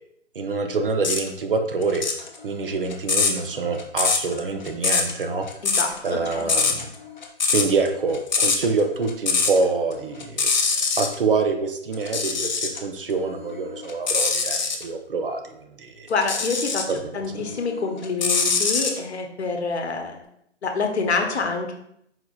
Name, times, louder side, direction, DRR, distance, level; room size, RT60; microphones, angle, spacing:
voice 1, 0.4-2.0 2.4-5.5 6.0-6.9 7.5-10.5 10.7-16.1 16.9-17.1, right 4 dB, 50° right, 6 dB, 0.5 m, -26 dB
sound 1, 1.0-1.3 1.8-9.6 9.9-11.1 11.9-12.8 13.3-14.8 16.2-17.0 17.4-19.0, left 5 dB, 40° left, 0.5 m, -23 dB
voice 2, 5.6-6.8 16.1-16.8 17.1-20.2 20.6-21.7, left 4 dB, 65° left, 4 dB, 0.8 m, -27 dB
4.6 x 3.5 x 2.3 m, 0.74 s
figure-of-eight pair, 145°, 36 cm